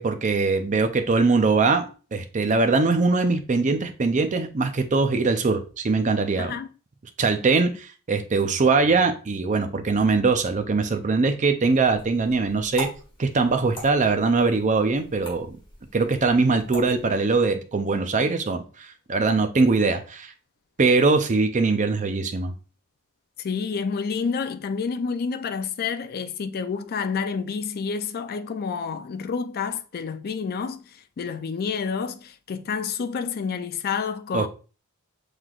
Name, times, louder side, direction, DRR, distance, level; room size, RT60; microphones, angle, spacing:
voice 1, 0.0-6.5 7.2-12.9 13.2-15.5 15.9-18.6 19.1-20.3 20.8-22.5 34.3-34.5, right 3 dB, 35° right, 0.5 m, -22 dB
voice 2, 6.4-6.7 23.4-34.5, left 5 dB, 45° left, 0.4 m, -29 dB
sound 1, 11.6-17.4, equal, 20° left, 1.8 m, -42 dB
5.7 x 3.3 x 2.3 m
head